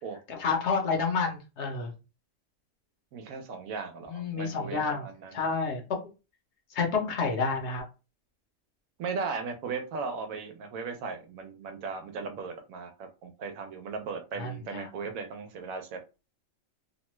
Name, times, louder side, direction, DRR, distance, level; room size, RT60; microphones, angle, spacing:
voice 1, 0.3-1.9 4.0-5.8 6.7-7.8 14.4-14.9, left 4 dB, 60° left, 2 dB, 1.0 m, -29 dB
voice 2, 3.1-5.3 9.0-16.0, right 5 dB, 80° right, 6 dB, 1.1 m, -37 dB
2.9 x 2.2 x 3.0 m, 0.30 s
omnidirectional pair, 1.4 m